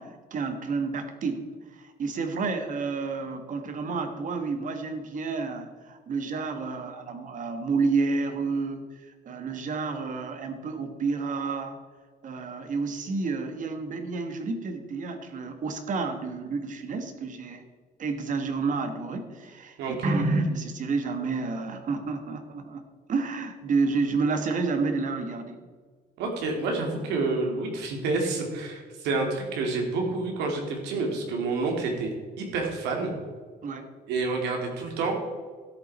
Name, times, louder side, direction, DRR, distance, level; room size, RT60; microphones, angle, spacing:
voice 1, 0.0-11.8 12.2-17.6 18.0-19.8 20.0-22.8 23.1-25.6 33.6-33.9, right 4 dB, 50° right, 7 dB, 1.5 m, -30 dB
voice 2, 26.2-33.1 34.1-35.1, right 3 dB, 90° right, 2 dB, 2.7 m, -28 dB
13.0 x 8.3 x 4.3 m, 1.5 s
cardioid pair, 110°, 17 cm